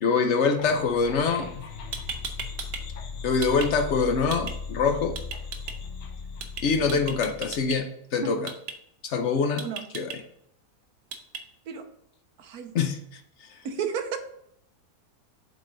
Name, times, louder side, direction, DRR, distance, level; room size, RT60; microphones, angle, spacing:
voice 1, 0.0-1.6 3.2-5.2 6.6-8.5 9.0-9.7 9.9-10.1 12.7-13.0, left 5 dB, 60° left, 6 dB, 0.8 m, -24 dB
sound 1, 0.6-7.8, left 5 dB, 80° left, 1.4 m, -38 dB
sound 2, 1.6-1.7 1.9-2.8 3.1-3.7 4.3-4.5 5.2-5.7 6.4-6.6 6.9-7.8 8.5-8.7 9.6-10.2 11.1-11.4, right 6 dB, 90° right, 1.5 m, -35 dB
voice 2, 12.4-12.7 13.6-14.2, right 6 dB, 65° right, 7 dB, 1.2 m, -32 dB
7.9 x 3.7 x 3.8 m, 0.72 s
omnidirectional pair, 1.8 m